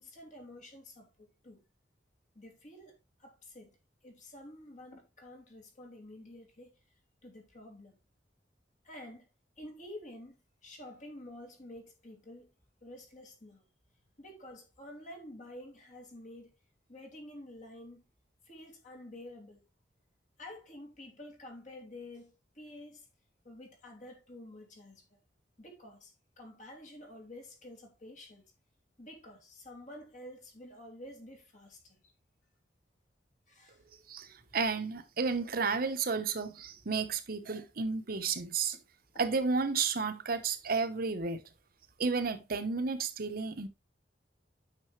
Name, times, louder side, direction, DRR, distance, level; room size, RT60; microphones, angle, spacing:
voice 1, 0.0-1.6 2.3-3.8 4.0-6.7 7.2-8.0 8.8-9.3 9.6-10.4 10.6-12.5 12.8-13.6 14.2-16.5 16.9-18.0 18.4-19.6 20.4-23.1 23.4-25.2 25.6-28.5 29.0-32.1 33.5-33.8 38.7-38.8, left 1 dB, 45° left, 2.9 m, -50 dB
voice 2, 34.1-38.8 39.2-41.4 42.0-43.7, right 4 dB, 55° right, 1.0 m, -32 dB
9.6 x 5.8 x 3.2 m
head